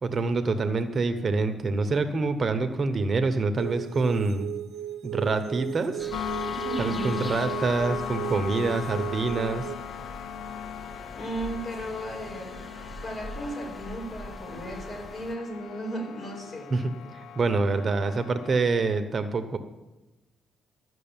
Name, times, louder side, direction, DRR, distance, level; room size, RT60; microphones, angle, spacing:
voice 1, 0.0-4.5 5.0-6.1 6.8-9.7 16.7-16.8 17.1-19.6, right 3 dB, 40° right, 8 dB, 1.0 m, -26 dB
sound 1, 3.6-9.8, right 11 dB, 85° right, 0.8 m, -36 dB
sound 2, 6.0-15.4, equal, 10° left, 0.9 m, -43 dB
sound 3, 6.1-18.6, left 9 dB, 80° left, 0.4 m, -38 dB
voice 2, 6.6-7.1 11.1-12.6 13.0-16.7, right 1 dB, 45° left, -2 dB, 6.2 m, -35 dB
13.5 x 6.4 x 8.9 m, 1.0 s
cardioid pair, 90°, 0 cm